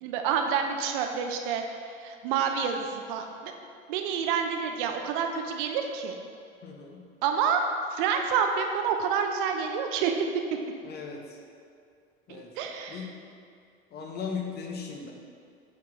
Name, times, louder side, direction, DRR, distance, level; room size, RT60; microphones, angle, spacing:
voice 1, 0.0-1.6 2.0-3.5 3.9-6.2 7.2-7.6 7.9-10.3 12.3-13.0, right 7 dB, 55° right, 4 dB, 0.6 m, -28 dB
voice 2, 6.6-7.1 10.8-11.4 12.3-12.5 12.9-13.1 13.9-15.1, left 5 dB, 30° left, 2 dB, 0.9 m, -37 dB
8.1 x 4.2 x 3.1 m, 2.3 s
figure-of-eight pair, 70°, 31 cm